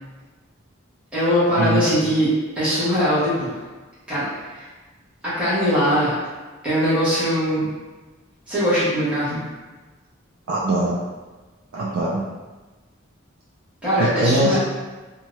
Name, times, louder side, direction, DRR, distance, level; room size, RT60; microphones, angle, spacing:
voice 1, 1.1-2.3 2.5-3.6 4.1-4.2 4.5-4.7 5.2-6.2 6.6-7.7 8.5-9.5 13.8-14.6, equal, 5° right, -13 dB, 1.1 m, -21 dB
voice 2, 10.5-11.0 11.7-12.3 14.0-14.6, right 1 dB, 80° right, -5 dB, 0.4 m, -22 dB
2.7 x 2.3 x 3.0 m, 1.3 s
head